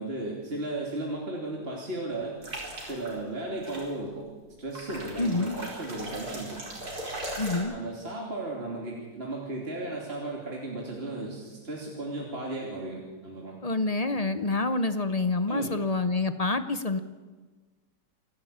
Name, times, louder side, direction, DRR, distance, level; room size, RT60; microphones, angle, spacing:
voice 1, 0.0-2.3 2.8-4.2 4.6-6.6 7.7-13.5 15.5-15.8, right 2 dB, 35° right, -2 dB, 3.2 m, -35 dB
sound 1, 2.4-3.1 3.6-3.9 4.7-7.6, right 1 dB, 55° right, 5.4 m, -38 dB
voice 2, 5.2-5.5 7.4-7.7 13.6-17.0, left 3 dB, 40° left, 10 dB, 0.5 m, -27 dB
28.0 x 11.5 x 8.7 m, 1.3 s
omnidirectional pair, 1.9 m